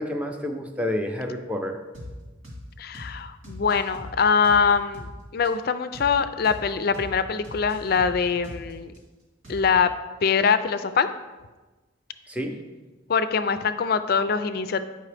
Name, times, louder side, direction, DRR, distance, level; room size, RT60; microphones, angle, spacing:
voice 1, 0.0-1.8 12.3-12.6, left 1 dB, 5° right, 4 dB, 0.5 m, -29 dB
sound 1, 1.9-2.1 2.4-2.6 2.9-3.1 3.4-5.1 5.4-5.5 5.9-6.1 6.4-6.6 6.9-7.1 7.4-9.0 9.4-9.9, left 1 dB, 90° right, 2.2 m, -41 dB
voice 2, 2.8-5.1 5.3-8.9 9.5-9.9 10.2-11.1 13.1-14.8, left 6 dB, 50° left, 11 dB, 0.3 m, -23 dB
8.3 x 5.4 x 3.3 m, 1.2 s
head